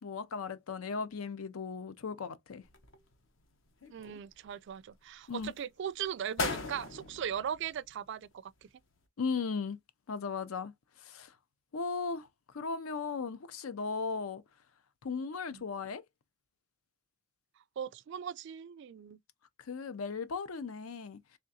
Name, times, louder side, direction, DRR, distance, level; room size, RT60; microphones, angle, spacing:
voice 1, 0.0-2.6 5.3-5.5 9.2-9.8 10.1-10.7 11.0-11.3 11.7-12.3 12.5-14.4 15.0-16.0 19.6-21.4, left 5 dB, 80° left, 0.5 m, -37 dB
sound 1, 2.6-3.4 3.8-4.7 5.2-5.6 6.0-6.1 6.4-8.3 8.6-8.7, left 3 dB, 60° left, 0.9 m, -39 dB
voice 2, 3.9-8.5 15.5-15.6 17.8-19.2, right 8 dB, 55° right, 0.3 m, -38 dB
3.6 x 3.3 x 2.7 m
head